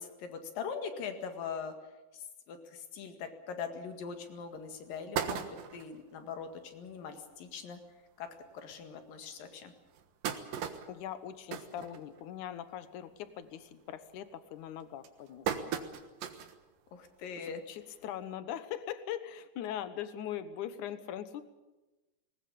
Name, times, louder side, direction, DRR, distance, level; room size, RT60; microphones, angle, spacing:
voice 1, 0.0-1.7 2.1-5.4 5.7-7.8 8.2-8.3 8.5-9.7 16.9-17.6, left 6 dB, 85° left, 7 dB, 3.7 m, -41 dB
sound 1, 4.0-4.1 4.6-4.7 4.9-6.0 6.5-6.6 6.9-7.0 7.3-7.5 8.2-8.3 8.8-8.9 9.7-12.5 12.9-13.2 13.6-14.0 14.6-16.6 17.0-17.1 18.3-18.4, right 8 dB, 85° right, 3.1 m, -37 dB
voice 2, 10.9-15.7 17.4-21.4, left 10 dB, 70° left, 12 dB, 2.6 m, -41 dB
19.5 x 19.5 x 8.7 m, 1.1 s
omnidirectional pair, 3.9 m